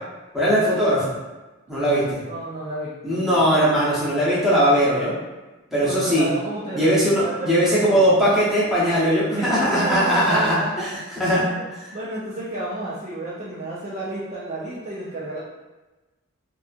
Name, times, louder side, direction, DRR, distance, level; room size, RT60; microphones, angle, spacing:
voice 1, 0.3-1.1 1.7-2.2 3.0-5.1 5.7-6.3 6.7-10.6 11.2-11.4, equal, ahead, -9 dB, 0.7 m, -19 dB
voice 2, 1.7-3.4 5.7-8.1 9.3-11.0 11.3-15.4, right 2 dB, 35° right, -7 dB, 0.4 m, -31 dB
2.6 x 2.4 x 2.4 m, 1.1 s
head